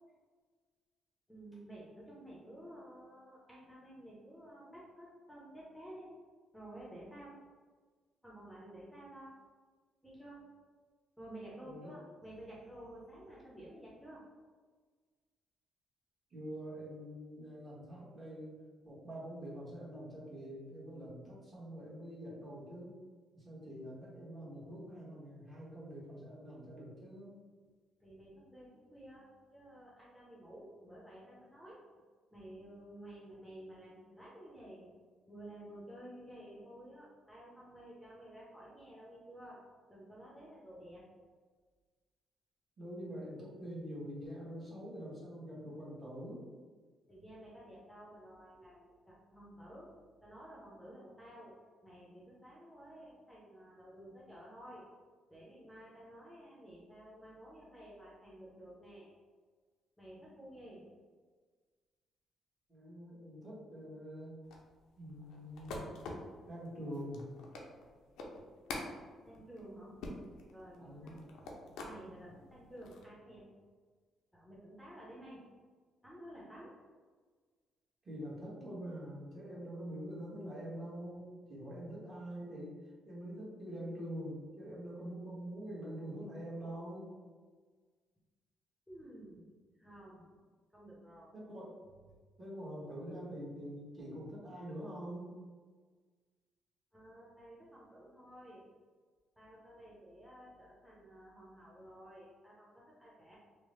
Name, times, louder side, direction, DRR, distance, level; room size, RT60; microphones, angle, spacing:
voice 1, 1.3-6.1 6.5-7.4 8.2-9.4 10.0-10.5 11.2-14.3 28.0-31.8 32.3-34.9 35.3-41.1 47.1-49.9 50.2-54.9 55.3-59.1 60.0-60.9 69.3-70.0 70.5-71.2 71.8-73.5 74.3-75.4 76.0-76.8 88.9-89.4 89.8-90.4 90.7-91.3 96.9-98.6 99.4-103.4, right 1 dB, 5° left, -6 dB, 0.6 m, -52 dB
voice 2, 16.3-18.6 18.8-23.0 23.3-27.3 42.8-46.4 62.7-64.4 65.0-65.9 66.5-67.2 70.8-71.2 78.0-82.7 83.0-87.1 91.3-91.7 92.4-95.4, equal, 35° right, -7 dB, 1.2 m, -45 dB
sound 1, 64.4-72.0 72.5-73.0, left 2 dB, 85° left, 0.4 m, -46 dB
2.9 x 2.0 x 3.0 m, 1.5 s
cardioid pair, 90°, 0 cm